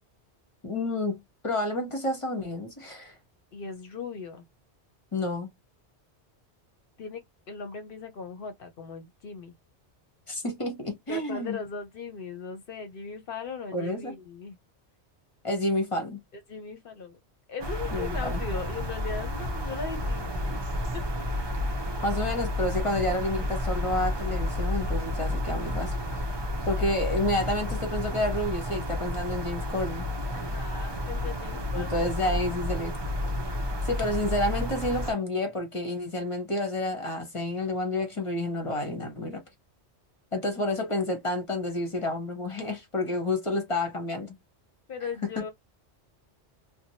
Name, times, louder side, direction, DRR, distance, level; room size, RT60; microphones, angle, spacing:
voice 1, 0.6-3.1 5.1-5.5 10.3-11.6 13.7-14.1 15.4-16.2 17.9-18.4 22.0-26.0 26.7-30.1 31.7-32.9 33.8-39.4 40.3-44.4 45.4-45.5, left 1 dB, 30° left, 0.9 m, -29 dB
voice 2, 3.5-4.5 7.0-7.2 7.5-9.5 11.1-14.6 16.3-17.2 17.5-20.6 20.9-21.0 30.3-32.7 44.9-45.5, left 5 dB, 60° left, 0.8 m, -38 dB
sound 1, 17.6-35.1, left 1 dB, 30° right, 0.5 m, -31 dB
2.8 x 2.2 x 2.7 m
omnidirectional pair, 1.1 m